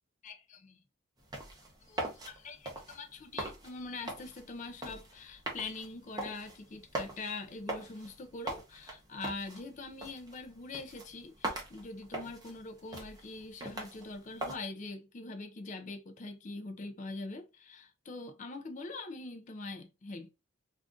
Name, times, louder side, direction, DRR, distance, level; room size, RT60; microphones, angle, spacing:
voice 1, 0.2-0.8 1.8-20.3, left 3 dB, 35° left, 0.4 m, -43 dB
sound 1, 1.2-14.6, right 1 dB, 20° right, 0.8 m, -43 dB
2.5 x 2.4 x 3.5 m
head